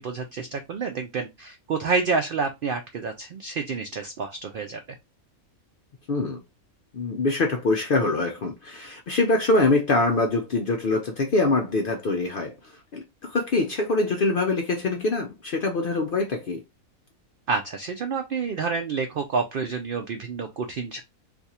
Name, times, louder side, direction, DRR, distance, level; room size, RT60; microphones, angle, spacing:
voice 1, 0.0-4.8 17.5-21.0, right 4 dB, 80° right, 0.4 m, -28 dB
voice 2, 6.1-6.4 6.9-16.6, left 2 dB, 65° left, 0.5 m, -24 dB
2.5 x 2.4 x 4.1 m
omnidirectional pair, 1.5 m